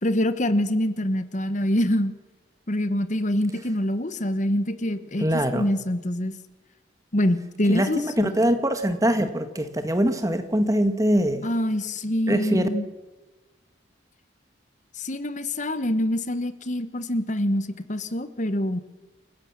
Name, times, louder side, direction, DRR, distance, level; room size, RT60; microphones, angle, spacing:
voice 1, 0.0-2.1 2.7-5.3 5.5-6.4 7.1-8.3 11.4-12.9 14.9-18.8, left 1 dB, 40° left, 12 dB, 1.3 m, -25 dB
voice 2, 5.2-5.7 7.7-11.5 12.3-12.7, equal, 20° right, 9 dB, 1.6 m, -23 dB
28.5 x 16.0 x 7.4 m, 1.2 s
head